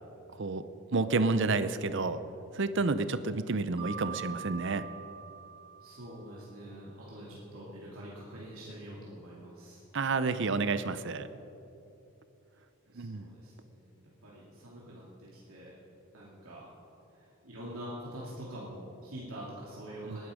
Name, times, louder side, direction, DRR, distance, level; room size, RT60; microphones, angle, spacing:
voice 1, 0.9-2.2 2.5-4.8 9.9-11.3 12.9-13.3 20.1-20.2, right 3 dB, 55° right, 12 dB, 0.6 m, -30 dB
Mallet percussion, 3.8-6.5, right 6 dB, 25° right, 1.5 m, -44 dB
voice 2, 5.8-9.9 12.9-13.9 14.2-15.8 16.1-16.6 17.1-20.3, right 1 dB, 80° right, -6 dB, 2.6 m, -45 dB
19.5 x 11.0 x 5.1 m, 2.8 s
head